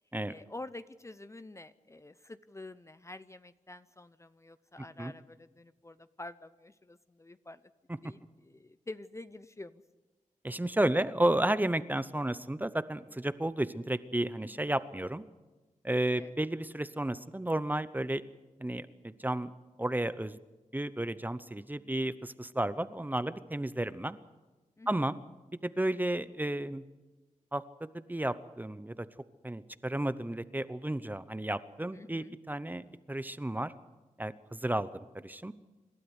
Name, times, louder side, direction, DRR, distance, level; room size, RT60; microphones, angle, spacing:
voice 1, 0.3-7.6 8.0-9.8 14.4-14.7 16.2-16.3 24.8-24.9 31.9-32.4, left 2 dB, 20° left, 13 dB, 0.7 m, -48 dB
voice 2, 10.4-15.2 15.8-18.2 18.6-19.5 19.8-20.4 20.7-24.2 24.9-25.2 25.6-26.8 27.5-29.1 29.4-33.7 34.2-35.5, right 1 dB, 15° right, 14 dB, 0.8 m, -32 dB
26.5 x 12.5 x 8.1 m, 1.2 s
cardioid pair, 75°, 14 cm